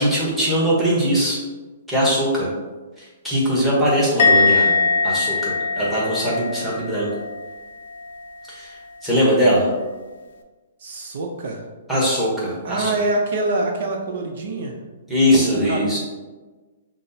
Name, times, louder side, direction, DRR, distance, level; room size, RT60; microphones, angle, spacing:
voice 1, 0.0-1.4 1.9-2.5 3.2-4.7 5.0-7.1 8.5-8.7 9.0-9.7 11.9-12.9 15.1-16.0, equal, ahead, -7 dB, 1.0 m, -20 dB
Musical instrument, 4.2-7.6 7.8-8.3, left 4 dB, 60° left, 0.5 m, -21 dB
voice 2, 10.8-11.6 12.6-14.7 15.5-16.0, right 2 dB, 65° right, 1 dB, 0.6 m, -25 dB
5.9 x 2.0 x 2.7 m, 1.2 s
hypercardioid pair, 160°, 0 cm